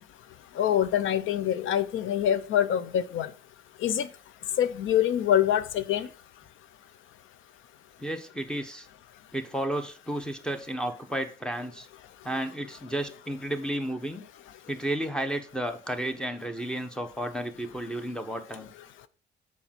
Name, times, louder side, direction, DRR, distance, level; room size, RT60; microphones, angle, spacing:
voice 1, 0.6-3.3 3.8-4.1 4.6-6.1, left 10 dB, 80° left, 0.7 m, -25 dB
voice 2, 8.0-8.9 9.3-11.9 12.2-14.3 14.7-18.7, right 1 dB, 5° left, 1.0 m, -32 dB
7.1 x 4.6 x 5.9 m
cardioid pair, 90°, 20 cm